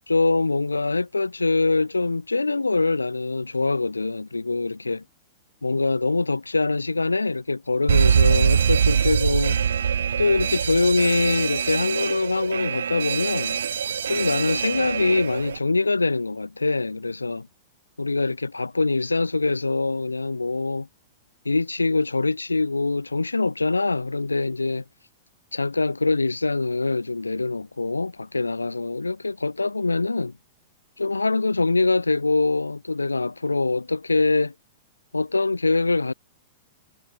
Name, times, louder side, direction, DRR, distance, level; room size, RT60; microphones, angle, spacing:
voice 1, 0.1-5.0 5.6-9.6 10.2-13.6 14.0-17.5 18.0-20.9 21.4-24.8 25.5-30.3 31.0-34.5 35.1-36.1, left 3 dB, 90° left, 3.3 m, -24 dB
Alarm, 7.9-15.6, right 7 dB, 70° right, 6.1 m, -23 dB
figure-of-eight pair, 105°, 0 cm